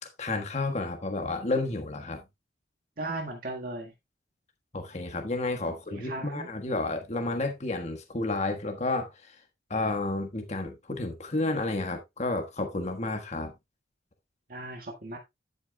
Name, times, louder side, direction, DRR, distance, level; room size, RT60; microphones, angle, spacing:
voice 1, 0.2-2.2 4.7-9.3 9.7-13.5, left 2 dB, 35° left, 1.4 m, -31 dB
voice 2, 3.0-3.9 5.9-6.5 14.5-15.2, right 2 dB, 50° right, 1.8 m, -36 dB
11.5 x 8.1 x 2.3 m
head